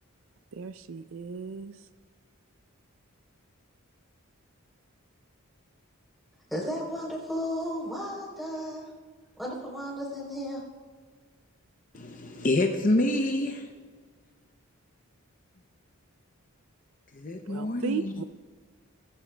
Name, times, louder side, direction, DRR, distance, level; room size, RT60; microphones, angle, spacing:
voice 1, 0.5-1.9 17.5-18.2, right 5 dB, 65° right, 12 dB, 0.4 m, -35 dB
voice 2, 6.5-8.8 9.4-10.6, equal, ahead, -4 dB, 3.6 m, -34 dB
voice 3, 11.9-13.7 17.1-18.2, left 1 dB, 35° left, 4 dB, 0.6 m, -27 dB
20.0 x 14.5 x 2.3 m, 1.5 s
head